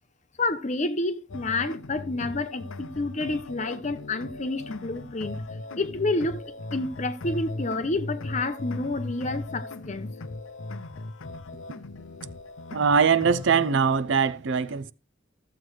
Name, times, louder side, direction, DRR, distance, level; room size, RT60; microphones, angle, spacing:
voice 1, 0.4-5.4 5.8-6.4 6.7-10.1, left 2 dB, 35° left, 0.8 m, -29 dB
sound 1, 1.3-13.7, left 2 dB, 75° left, 0.6 m, -38 dB
voice 2, 12.7-14.9, right 6 dB, 65° right, 0.5 m, -22 dB
14.0 x 7.7 x 3.2 m
head